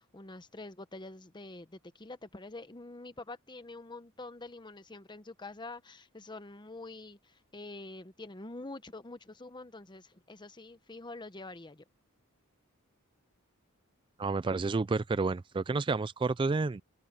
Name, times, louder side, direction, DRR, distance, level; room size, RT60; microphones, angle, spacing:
voice 1, 0.0-11.8, left 2 dB, 20° left, 0.9 m, -46 dB
voice 2, 14.2-16.8, right 3 dB, 20° right, 0.3 m, -30 dB
head